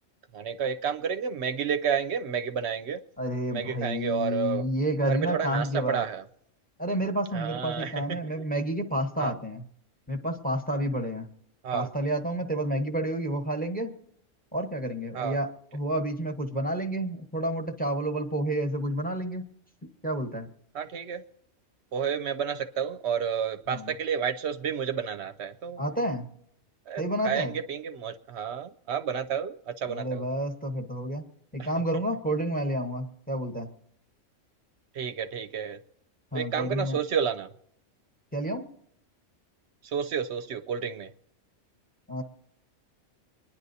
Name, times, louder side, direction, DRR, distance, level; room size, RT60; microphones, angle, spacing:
voice 1, 0.3-3.0 3.5-4.7 5.1-6.2 7.3-8.3 9.2-9.3 11.6-11.9 15.1-15.4 20.7-21.2 21.9-25.8 26.9-30.3 31.6-31.7 34.9-35.8 36.3-37.5 39.8-41.1, right 7 dB, 65° right, 9 dB, 0.8 m, -31 dB
voice 2, 3.2-6.0 6.8-9.6 10.1-11.3 11.7-13.9 14.5-19.5 20.0-20.5 23.7-23.9 25.8-26.3 27.0-27.5 29.9-31.3 31.5-33.7 36.3-37.0 38.3-38.7 42.1-42.2, right 1 dB, 10° left, 4 dB, 1.1 m, -30 dB
25.0 x 10.5 x 2.7 m, 0.70 s
omnidirectional pair, 1.3 m